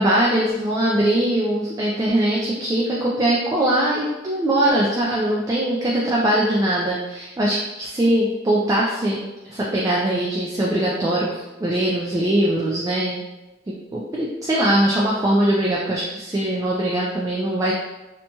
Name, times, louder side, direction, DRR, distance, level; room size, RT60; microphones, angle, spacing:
voice 1, 0.0-13.2 13.7-17.7, right 1 dB, 20° right, -4 dB, 0.3 m, -21 dB
2.9 x 2.2 x 2.8 m, 1.0 s
head